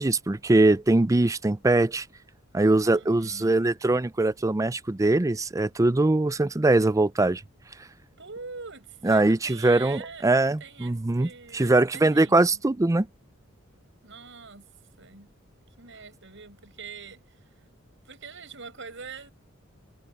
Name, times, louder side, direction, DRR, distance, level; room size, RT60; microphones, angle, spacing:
voice 1, 0.0-2.1 2.5-7.4 9.0-13.1, right 2 dB, 15° right, 0.5 m, -22 dB
voice 2, 2.9-3.6 8.2-12.6 14.0-14.7 15.0-15.3 15.8-17.7 18.0-19.3, right 5 dB, 65° right, 7.9 m, -44 dB
head